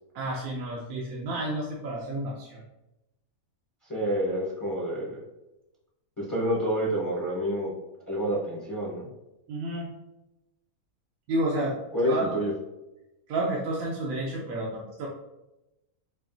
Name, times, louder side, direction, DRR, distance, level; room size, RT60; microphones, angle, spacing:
voice 1, 0.1-2.6 9.5-9.9 11.3-11.8 12.0-12.4 13.3-15.1, right 1 dB, 80° right, -3 dB, 1.1 m, -30 dB
voice 2, 3.9-5.2 6.2-7.7 8.1-9.1 11.9-12.5, equal, 20° left, -6 dB, 0.7 m, -28 dB
5.7 x 2.4 x 2.6 m, 0.96 s
omnidirectional pair, 1.5 m